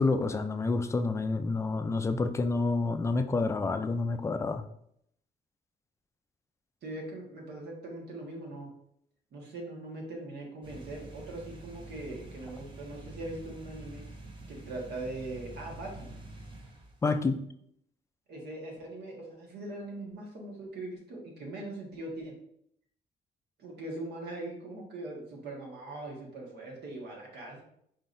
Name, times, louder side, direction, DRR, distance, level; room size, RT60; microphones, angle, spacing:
voice 1, 0.0-4.6 17.0-17.4, left 3 dB, 15° left, 8 dB, 0.3 m, -28 dB
voice 2, 6.8-8.7 9.3-14.1 14.5-16.1 18.3-22.3 23.6-27.6, right 2 dB, 70° right, 0 dB, 1.4 m, -41 dB
sound 1, 10.6-17.1, right 2 dB, 30° right, 0.9 m, -47 dB
4.6 x 3.8 x 2.5 m, 0.72 s
cardioid pair, 115°, 17 cm